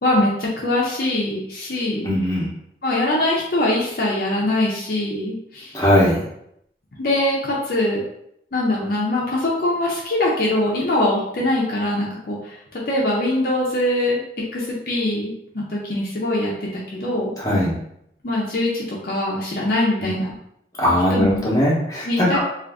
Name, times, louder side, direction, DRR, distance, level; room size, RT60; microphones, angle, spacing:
voice 1, 0.0-2.1 2.8-5.7 7.0-8.0 8.5-12.6 12.9-14.2 14.5-17.3 18.2-20.3 21.1-21.4 22.0-22.4, left 1 dB, 55° left, -4 dB, 0.6 m, -22 dB
voice 2, 2.0-2.5 5.7-6.2 17.4-17.8 20.0-20.2 20.8-22.4, equal, 20° left, -6 dB, 0.8 m, -19 dB
2.5 x 2.4 x 3.4 m, 0.75 s
head